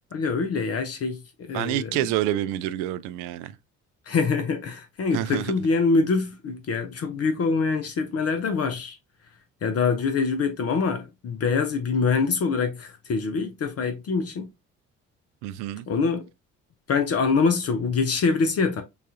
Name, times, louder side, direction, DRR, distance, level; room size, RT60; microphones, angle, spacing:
voice 1, 0.1-1.9 4.1-9.0 9.6-14.5 15.9-16.3 16.9-18.8, left 4 dB, 40° left, 0.8 m, -24 dB
voice 2, 1.5-3.6 5.1-5.5 15.4-15.9, right 13 dB, 55° right, 0.5 m, -28 dB
6.8 x 2.4 x 2.7 m
figure-of-eight pair, 45°, 39 cm